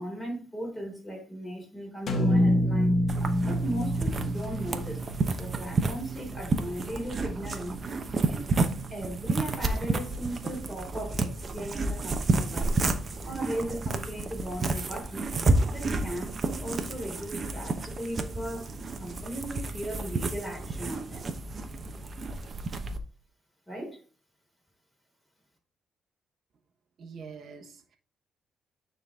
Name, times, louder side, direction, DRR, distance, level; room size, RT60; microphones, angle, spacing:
voice 1, 0.0-3.0 3.4-5.0 5.3-7.8 8.3-8.5 8.9-12.8 13.2-15.3 15.7-18.7 19.0-21.3 23.7-24.0, right 1 dB, 10° left, 3.8 m, -37 dB
sound 1, 2.1-6.3, equal, 50° left, 1.3 m, -27 dB
sound 2, 3.1-23.0, right 3 dB, 40° right, 0.9 m, -31 dB
voice 2, 27.0-28.0, right 5 dB, 55° right, 1.2 m, -45 dB
9.3 x 3.9 x 3.7 m
cardioid pair, 90°, 0 cm